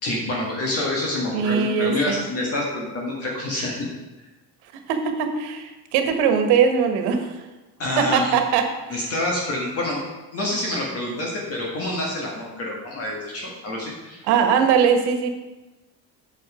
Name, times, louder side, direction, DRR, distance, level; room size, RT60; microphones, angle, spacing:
voice 1, 0.0-3.9 7.8-8.3 8.9-10.0 10.3-14.2, left 1 dB, 40° left, -2 dB, 1.8 m, -27 dB
voice 2, 1.3-2.2 4.7-7.3 8.0-9.1 14.2-15.3, right 6 dB, 80° right, 6 dB, 1.4 m, -21 dB
8.0 x 7.8 x 5.0 m, 1.1 s
cardioid pair, 160°, 38 cm